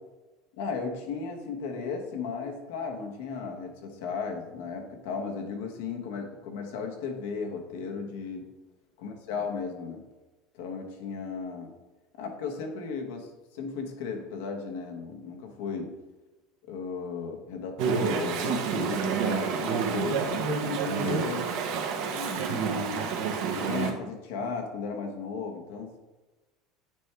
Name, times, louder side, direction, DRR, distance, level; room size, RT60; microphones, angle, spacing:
voice 1, 0.5-8.5 9.0-10.0 10.5-11.7 12.2-15.9 16.7-21.5 22.1-23.1 23.6-26.0, left 5 dB, 80° left, 3 dB, 1.2 m, -35 dB
Chatter / Stream, 17.8-23.9, right 6 dB, 70° right, 1.0 m, -29 dB
8.9 x 4.5 x 3.4 m, 1.1 s
supercardioid pair, 125°, 0 cm